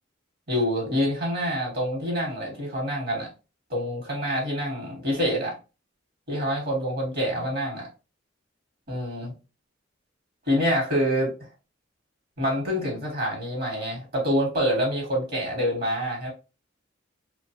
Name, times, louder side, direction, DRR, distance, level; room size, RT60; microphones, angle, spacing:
voice 1, 0.5-3.3 3.7-5.5 6.3-7.9 8.9-9.3 10.5-11.3 12.4-16.3, equal, 50° right, 1.1 m, -26 dB
2.5 x 2.2 x 2.8 m
head